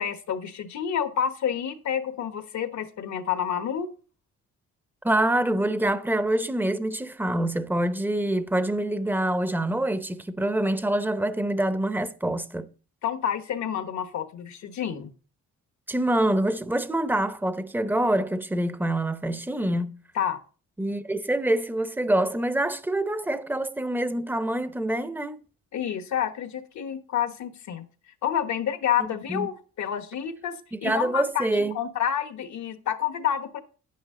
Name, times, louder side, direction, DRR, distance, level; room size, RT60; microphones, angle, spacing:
voice 1, 0.0-3.9 13.0-15.1 20.1-20.4 25.7-27.8 28.2-31.5 31.7-33.6, left 9 dB, 70° left, 1.3 m, -29 dB
voice 2, 5.0-12.7 15.9-20.0 20.8-25.4 29.3-29.5 30.7-31.7, right 1 dB, 5° right, 0.8 m, -26 dB
9.8 x 9.2 x 3.8 m
cardioid pair, 90°, 30 cm